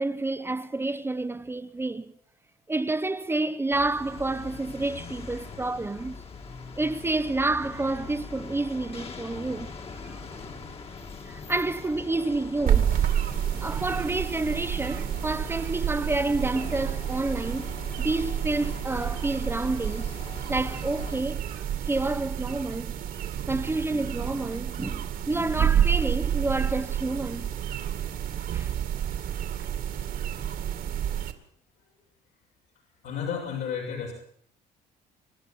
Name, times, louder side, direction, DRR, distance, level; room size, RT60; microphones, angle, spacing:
voice 1, 0.0-2.1 2.7-6.2 6.8-10.2 11.3-13.0 13.6-17.7 18.0-20.1 20.5-23.0 23.5-27.5 28.5-28.7, right 2 dB, 15° right, 0.9 m, -29 dB
sound 1, 3.7-21.2, left 4 dB, 35° left, 2.1 m, -42 dB
sound 2, 12.7-31.3, right 9 dB, 65° right, 2.4 m, -29 dB
voice 2, 33.0-34.1, left 7 dB, 80° left, 6.9 m, -32 dB
27.5 x 12.0 x 9.0 m
cardioid pair, 110°, 17 cm